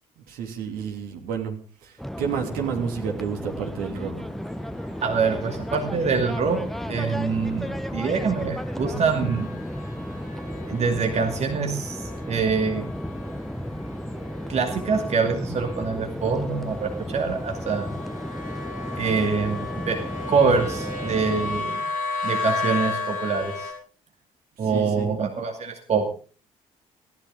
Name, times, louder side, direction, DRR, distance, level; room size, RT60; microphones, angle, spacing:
voice 1, 0.3-1.6 1.8-4.1 24.6-25.1, right 7 dB, 60° right, 3 dB, 3.1 m, -30 dB
sound 1, 2.0-21.6, equal, ahead, 1.1 m, -33 dB
sound 2, 4.1-23.7, left 3 dB, 55° left, 7.8 m, -36 dB
voice 2, 5.0-6.6 6.9-9.5 10.7-12.8 14.5-17.9 19.0-19.6 19.9-20.0 20.3-21.8 22.2-23.7 24.6-26.1, right 5 dB, 40° right, 4 dB, 2.4 m, -25 dB
20.0 x 16.0 x 3.8 m, 0.39 s
figure-of-eight pair, 45°, 17 cm